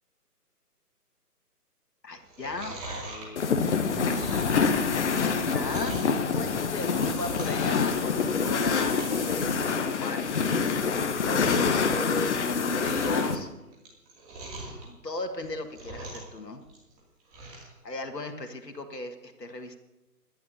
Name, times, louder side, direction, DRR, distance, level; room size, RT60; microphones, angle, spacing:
voice 1, 2.0-4.3 5.2-13.5 14.8-16.6 17.8-19.8, left 2 dB, 85° left, 6 dB, 1.9 m, -36 dB
Chewing mastication, 2.2-6.2 6.6-7.7 8.0-8.3 8.6-9.2 9.5-9.6 10.0-10.1 10.3-10.7 11.1-12.2 12.5-14.8 15.3-16.4 16.6-17.7 18.1-18.2, right 2 dB, 15° right, 2.7 m, -42 dB
sound 1, 3.4-13.4, left 5 dB, 45° left, 1.1 m, -26 dB
22.0 x 11.0 x 2.8 m, 1.0 s
figure-of-eight pair, 145°, 48 cm